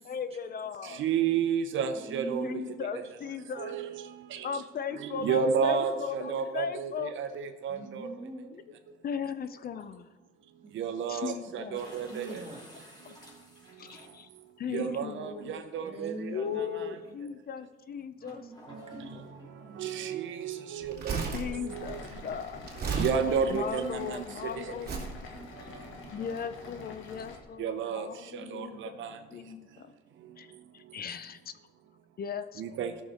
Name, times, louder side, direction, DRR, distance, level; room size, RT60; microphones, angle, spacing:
voice 1, 0.0-1.0 2.4-3.8 4.4-7.1 8.5-8.8 9.0-10.1 11.1-11.8 12.3-12.4 13.0-13.1 13.8-14.3 14.6-15.6 16.3-18.5 21.3-22.7 23.5-25.1 26.1-29.1 29.3-29.9 30.4-30.5 30.7-31.4 32.2-32.6, left 7 dB, 50° left, 0.6 m, -37 dB
voice 2, 0.8-2.4 2.9-3.0 3.6-4.6 4.9-8.1 10.7-12.4 14.7-17.0 19.8-22.0 22.9-24.2 24.6-24.7 25.7-25.8 27.6-28.1 28.3-29.2 32.6-32.9, right 7 dB, 75° right, 0.8 m, -32 dB
voice 3, 2.1-2.7 5.7-5.9 7.7-8.5 10.6-10.8 11.7-12.6 15.8-16.9 18.2-19.3 19.6-19.9 21.6-21.7 24.9-25.5 26.0-26.3 28.4-28.9, right 2 dB, 30° right, 2.2 m, -44 dB
sound 1, 11.7-14.5 15.3-15.4 18.3-19.9, left 1 dB, 20° left, 3.1 m, -52 dB
Crumpling crinkling, 20.8-24.2 24.8-25.2 25.9-26.0, right 4 dB, 50° right, 2.4 m, -35 dB
sound 2, 21.7-27.4, left 4 dB, 80° left, 1.6 m, -46 dB
14.0 x 6.6 x 4.3 m
cardioid pair, 90°, 20 cm